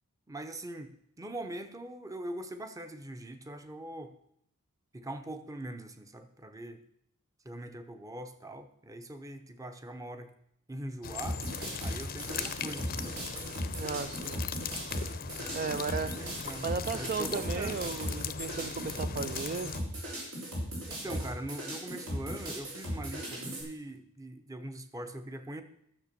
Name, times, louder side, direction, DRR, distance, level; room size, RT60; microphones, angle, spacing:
voice 1, 0.3-0.9 1.2-4.1 4.9-6.8 7.4-10.3 10.7-11.4 11.8-13.5 15.4-15.8 16.2-16.7 16.9-18.0 20.9-25.6, right 1 dB, 15° right, 9 dB, 0.8 m, -42 dB
sound 1, 11.0-19.8, left 7 dB, 40° left, 0.6 m, -39 dB
sound 2, 11.2-23.6, equal, 80° right, 4.8 m, -37 dB
voice 2, 13.7-14.4 15.5-16.1 16.6-19.7 21.1-21.2, right 5 dB, 40° right, 10 dB, 0.4 m, -35 dB
12.0 x 7.0 x 6.7 m, 0.75 s
head